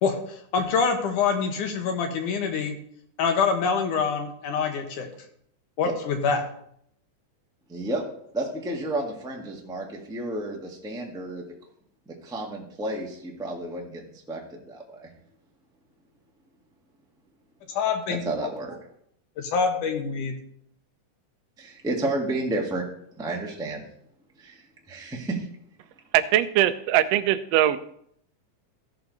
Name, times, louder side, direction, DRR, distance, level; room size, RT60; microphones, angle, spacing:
voice 1, 0.0-2.8 3.2-5.1 5.8-6.5 17.7-18.2 19.4-20.4, left 5 dB, 75° left, 5 dB, 2.8 m, -25 dB
voice 2, 7.7-8.0 8.3-11.4 12.1-15.1 18.1-18.8 21.6-22.8 23.2-23.8 24.4-24.6 24.9-25.4, right 2 dB, 5° right, -1 dB, 0.6 m, -31 dB
voice 3, 26.1-27.8, right 12 dB, 85° right, 10 dB, 1.4 m, -21 dB
15.0 x 7.0 x 4.1 m, 0.68 s
omnidirectional pair, 3.7 m